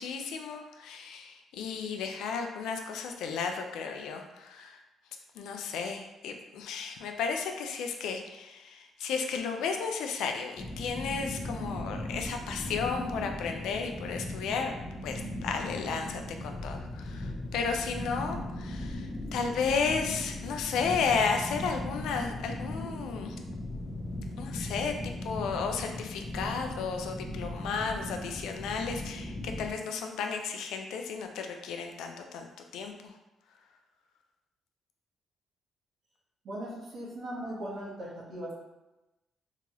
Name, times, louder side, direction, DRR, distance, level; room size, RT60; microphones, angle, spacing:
voice 1, 0.0-4.8 5.4-14.7 15.0-23.3 24.4-24.9 25.2-32.5 32.7-32.9, left 5 dB, 85° left, 4 dB, 0.3 m, -33 dB
sound 1, 10.6-29.7, left 1 dB, 20° left, 0.5 m, -38 dB
voice 2, 36.4-38.5, right 1 dB, 65° right, -5 dB, 1.0 m, -38 dB
2.8 x 2.2 x 2.9 m, 1.0 s
cardioid pair, 90°, 0 cm